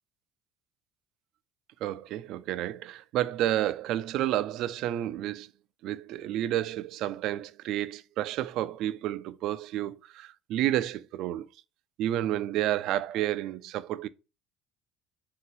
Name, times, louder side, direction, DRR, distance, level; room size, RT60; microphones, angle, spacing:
voice 1, 1.8-5.5 5.8-11.4 12.0-14.1, right 13 dB, 65° right, 0.3 m, -30 dB
3.8 x 2.8 x 4.0 m
supercardioid pair, 90°, 0 cm